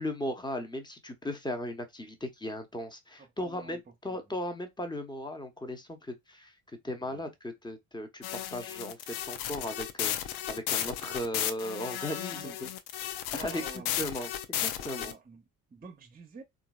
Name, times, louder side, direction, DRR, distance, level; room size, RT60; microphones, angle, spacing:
voice 1, 0.0-6.5 6.8-12.7 13.3-13.6 14.0-15.1, left 1 dB, 10° left, 0.9 m, -37 dB
voice 2, 3.2-4.4 7.0-7.2 12.3-12.6 13.3-13.9 14.9-16.4, right 5 dB, 20° right, 0.8 m, -49 dB
sound 1, 8.2-15.1, left 11 dB, 55° left, 0.6 m, -34 dB
3.8 x 2.6 x 2.3 m
figure-of-eight pair, 50°, 47 cm